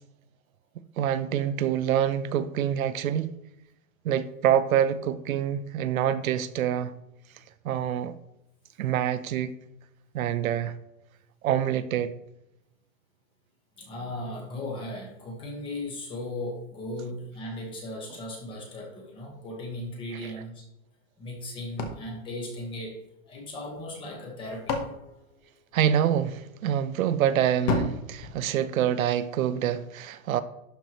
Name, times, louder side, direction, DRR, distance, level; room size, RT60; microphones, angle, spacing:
voice 1, 1.0-3.3 4.0-6.9 7.6-8.2 8.8-9.6 10.1-10.7 11.4-12.1 25.7-30.4, right 10 dB, 90° right, 0.8 m, -26 dB
voice 2, 13.8-20.7 21.2-23.0 23.2-24.8, left 1 dB, 10° left, 1.3 m, -37 dB
sound 1, 21.8-23.3 24.2-26.2 27.7-29.3, left 4 dB, 35° left, 1.1 m, -34 dB
12.0 x 4.7 x 3.0 m
supercardioid pair, 175°, 40 cm